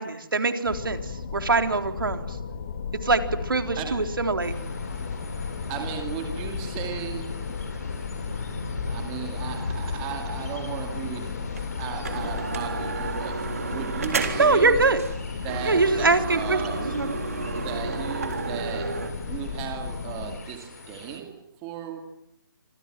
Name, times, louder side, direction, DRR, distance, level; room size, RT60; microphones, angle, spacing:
voice 1, 0.0-2.4 3.0-4.5 14.4-15.0 15.6-17.2, right 3 dB, 70° right, 7 dB, 3.9 m, -23 dB
sound 1, 0.6-20.4, left 6 dB, 30° left, 2.6 m, -35 dB
voice 2, 3.8-4.2 5.7-7.3 8.9-11.3 11.7-13.4 13.7-14.8 15.4-16.8 17.5-19.0 19.3-21.4 21.6-22.0, right 10 dB, 10° right, 4 dB, 2.4 m, -36 dB
sound 2, 4.4-21.2, left 3 dB, 45° left, 7.6 m, -39 dB
sound 3, 11.6-11.7 12.0-14.6 15.0-15.2 15.5-19.1, right 5 dB, 40° right, 3.7 m, -32 dB
28.0 x 26.5 x 7.6 m, 0.77 s
hypercardioid pair, 170°, 12 cm